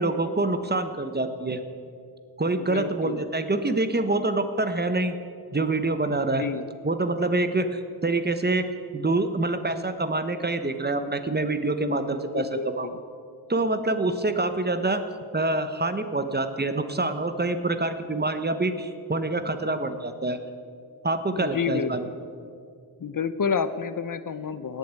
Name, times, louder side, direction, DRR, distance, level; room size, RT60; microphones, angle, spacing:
voice 1, 0.0-1.6 2.4-5.1 5.5-6.4 6.8-8.7 8.9-12.9 13.5-15.0 15.3-20.4 21.0-22.1, right 2 dB, 25° right, 9 dB, 1.0 m, -26 dB
voice 2, 2.6-3.2 6.3-6.6 11.8-12.0 12.3-12.9 21.3-22.1 23.0-24.8, left 6 dB, 55° left, 13 dB, 0.7 m, -30 dB
17.0 x 8.5 x 8.2 m, 2.3 s
wide cardioid pair, 100°, 39 cm